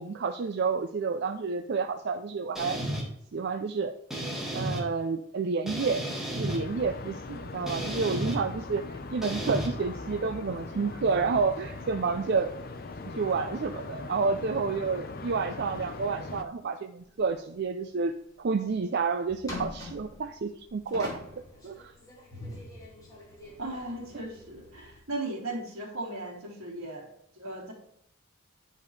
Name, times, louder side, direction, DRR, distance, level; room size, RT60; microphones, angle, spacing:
voice 1, 0.0-2.8 3.3-3.9 4.5-12.5 13.1-18.1 18.4-21.2 21.6-21.9, right 4 dB, 50° right, 6 dB, 0.4 m, -30 dB
sound 1, 2.6-3.0 4.1-4.8 5.7-6.6 7.7-8.4 9.2-9.7, right 1 dB, ahead, 1.7 m, -33 dB
sound 2, 6.5-16.5, left 3 dB, 45° left, 0.6 m, -40 dB
sound 3, 17.0-17.5 17.9-18.0 18.5-18.8 19.3-25.0, left 2 dB, 15° left, 2.2 m, -44 dB
voice 2, 23.6-27.1 27.3-27.7, right 2 dB, 80° right, -4 dB, 3.2 m, -37 dB
10.5 x 5.2 x 3.2 m, 0.73 s
head